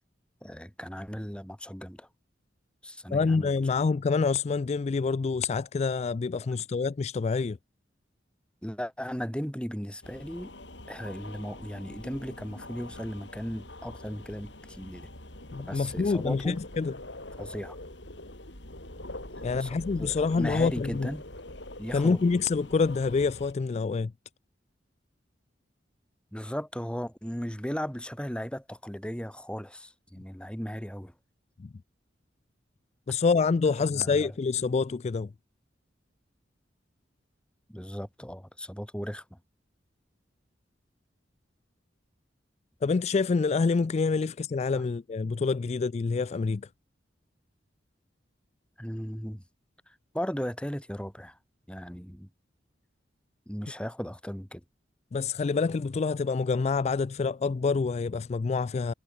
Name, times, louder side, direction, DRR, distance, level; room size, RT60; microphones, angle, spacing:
voice 1, 0.4-2.1 2.8-3.6 8.6-10.5 10.9-15.1 15.7-16.6 17.4-17.8 19.3-21.2 21.8-22.2 26.3-31.1 33.9-34.3 37.7-39.4 44.8-44.9 48.8-49.4 49.9-51.4 51.7-52.3 53.5-54.6, equal, 5° left, 4.6 m, -37 dB
voice 2, 3.1-7.6 15.5-16.9 19.4-21.1 21.9-24.1 31.6-31.7 33.1-35.3 42.8-46.7 55.1-58.9, left 4 dB, 35° left, 0.3 m, -27 dB
sound 1, 10.0-23.5, left 1 dB, 75° left, 7.7 m, -44 dB
head